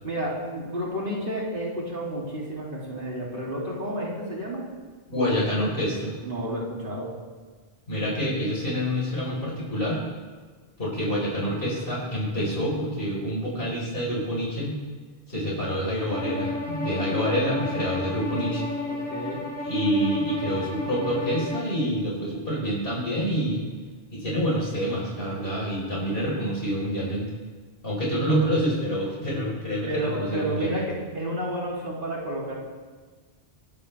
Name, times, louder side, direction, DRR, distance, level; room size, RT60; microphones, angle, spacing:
voice 1, 0.0-4.7 6.2-7.1 18.9-19.5 29.8-32.5, right 1 dB, 55° right, -5 dB, 3.2 m, -31 dB
voice 2, 5.1-6.1 7.9-10.0 10.8-14.7 15.3-18.6 19.6-23.6 24.1-27.3 27.8-30.8, equal, 60° left, -4 dB, 4.7 m, -27 dB
Bowed string instrument, 16.1-21.7, left 2 dB, 10° left, 6.0 m, -32 dB
26.0 x 13.0 x 3.4 m, 1.5 s
omnidirectional pair, 1.1 m